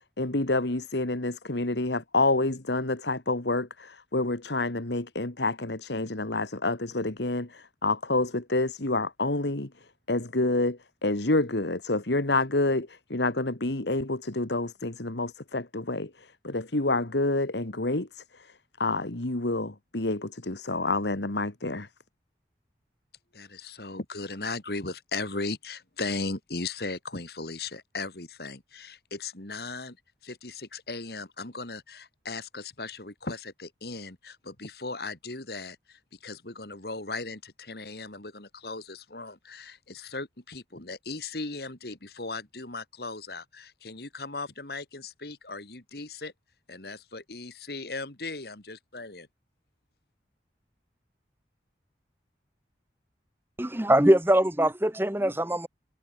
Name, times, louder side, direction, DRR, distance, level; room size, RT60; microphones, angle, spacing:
voice 1, 0.2-9.7 10.1-18.2 18.8-21.9, left 2 dB, 75° left, 2.0 m, -28 dB
voice 2, 23.3-30.0 30.2-46.3 46.7-49.3, left 3 dB, 60° left, 2.5 m, -37 dB
voice 3, 53.6-55.7, right 1 dB, 10° right, 1.2 m, -22 dB
head